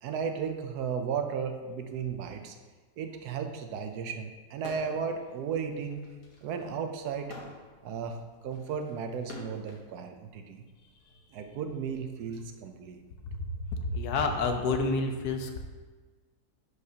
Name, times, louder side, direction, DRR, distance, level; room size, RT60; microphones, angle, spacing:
voice 1, 0.0-2.6 3.0-6.1 6.4-7.3 7.8-10.6 11.3-13.0, right 6 dB, 85° right, 6 dB, 1.2 m, -35 dB
sound 1, 4.6-5.1 5.5-9.9 10.7-12.4, left 3 dB, 65° left, 1.5 m, -48 dB
voice 2, 13.9-15.6, left 3 dB, 85° left, 5 dB, 1.3 m, -28 dB
11.0 x 4.9 x 2.8 m, 1.4 s
omnidirectional pair, 1.6 m